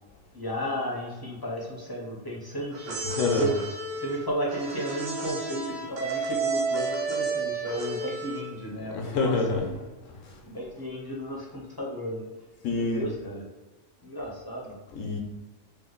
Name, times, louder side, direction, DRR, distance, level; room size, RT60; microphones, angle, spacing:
voice 1, 0.3-3.6 4.0-9.9 10.4-12.3 12.7-13.4 14.0-14.7, equal, 30° left, -4 dB, 0.5 m, -33 dB
sound 1, 2.7-8.6, right 3 dB, 55° right, 0.5 m, -31 dB
voice 2, 3.2-3.5 8.9-9.6 12.6-13.0 14.9-15.2, left 3 dB, 80° left, 2 dB, 1.0 m, -26 dB
3.2 x 2.1 x 3.7 m, 1.2 s
omnidirectional pair, 1.3 m